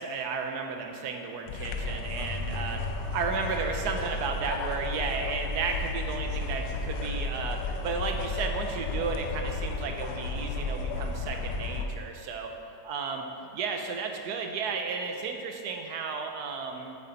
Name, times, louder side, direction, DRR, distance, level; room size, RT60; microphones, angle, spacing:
voice 1, 0.0-12.5 12.8-13.3 13.5-17.0, right 5 dB, 70° right, 4 dB, 1.2 m, -33 dB
sound 1, 1.5-11.9, left 3 dB, 80° left, 1.3 m, -33 dB
sound 2, 2.1-4.8, left 2 dB, 15° left, 1.1 m, -41 dB
8.8 x 6.5 x 4.2 m, 2.7 s
omnidirectional pair, 1.9 m